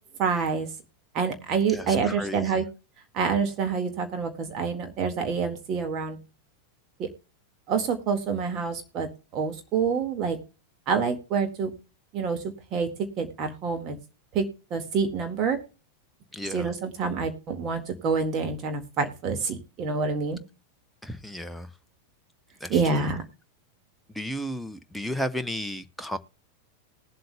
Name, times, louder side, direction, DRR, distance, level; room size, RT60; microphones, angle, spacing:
voice 1, 0.2-0.7 1.1-2.6 3.1-6.2 7.0-7.1 7.7-10.4 10.9-11.7 12.1-12.9 13.2-14.0 14.3-15.6 16.5-20.4 22.7-23.2, right 5 dB, 35° right, 1.8 m, -27 dB
voice 2, 1.7-2.6 16.3-16.7 21.0-21.7 22.6-23.1 24.1-26.2, equal, 5° left, 0.7 m, -34 dB
20.0 x 7.8 x 2.2 m
figure-of-eight pair, 90°, 0 cm